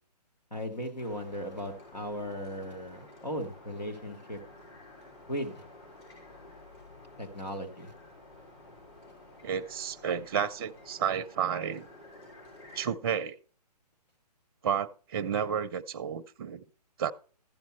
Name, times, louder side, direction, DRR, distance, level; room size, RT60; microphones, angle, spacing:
voice 1, 0.5-4.4 5.3-5.6 7.2-7.9, equal, 90° left, 2.6 m, -37 dB
sound 1, 1.0-12.9, left 2 dB, 40° left, 6.1 m, -52 dB
voice 2, 9.4-11.9 12.8-13.4 14.6-16.6 17.0-17.1, right 8 dB, 35° right, 0.5 m, -31 dB
14.0 x 7.3 x 4.4 m
figure-of-eight pair, 135°, 21 cm